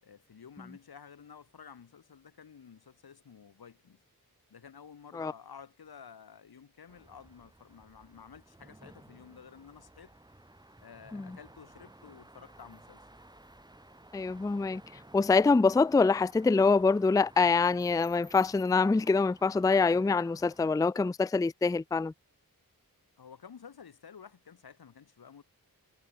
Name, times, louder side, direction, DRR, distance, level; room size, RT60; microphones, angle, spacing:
voice 1, 0.0-4.0 4.5-10.1 10.8-13.0 23.2-25.4, left 7 dB, 90° left, 2.8 m, -52 dB
sound 1, 6.9-20.8, right 1 dB, 10° right, 1.3 m, -56 dB
voice 2, 14.1-14.8 15.1-22.1, left 4 dB, 10° left, 0.4 m, -25 dB
wide cardioid pair, 65°, 36 cm